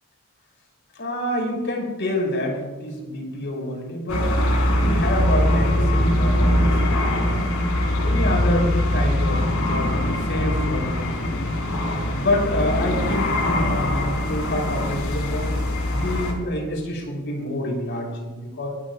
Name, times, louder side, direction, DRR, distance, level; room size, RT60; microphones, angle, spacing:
voice 1, 0.9-4.3 4.7-7.4 8.0-11.6 12.1-15.6 15.9-18.7, left 1 dB, 55° left, 0 dB, 5.8 m, -27 dB
sound 1, 4.1-16.3, left 1 dB, 85° left, 4.7 m, -22 dB
sound 2, 4.6-16.4, equal, 5° left, 3.8 m, -31 dB
24.5 x 17.5 x 2.5 m, 1.2 s
head